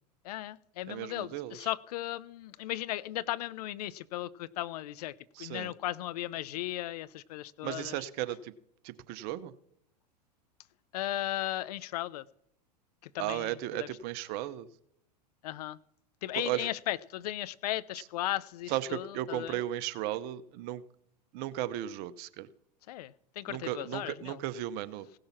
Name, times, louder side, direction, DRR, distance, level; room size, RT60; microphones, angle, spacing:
voice 1, 0.2-8.0 10.9-12.3 13.0-13.9 15.4-15.8 16.2-19.6 22.9-24.4, left 14 dB, 65° left, 19 dB, 0.5 m, -36 dB
voice 2, 0.9-1.7 5.4-5.7 7.6-8.5 8.8-9.5 13.2-14.7 16.4-16.7 18.7-20.8 21.3-22.5 23.5-25.1, right 13 dB, 50° right, 14 dB, 0.8 m, -35 dB
17.0 x 6.5 x 5.9 m, 0.75 s
hypercardioid pair, 100°, 21 cm